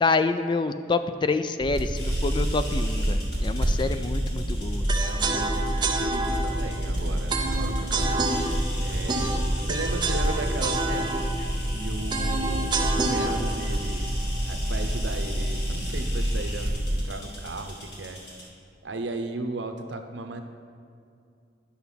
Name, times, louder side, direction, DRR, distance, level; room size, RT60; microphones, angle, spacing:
voice 1, 0.0-4.8, left 3 dB, 25° left, 10 dB, 0.3 m, -27 dB
sound 1, 1.6-17.0, equal, 60° right, 1.6 m, -28 dB
sound 2, 1.9-18.4, left 1 dB, 65° left, 1.9 m, -41 dB
sound 3, 4.9-15.0, right 3 dB, 25° right, 0.6 m, -29 dB
voice 2, 5.1-9.3 9.6-11.2 11.7-14.1 14.4-18.2 18.8-20.4, right 2 dB, 85° right, 6 dB, 0.8 m, -36 dB
10.0 x 5.8 x 5.6 m, 2.4 s
head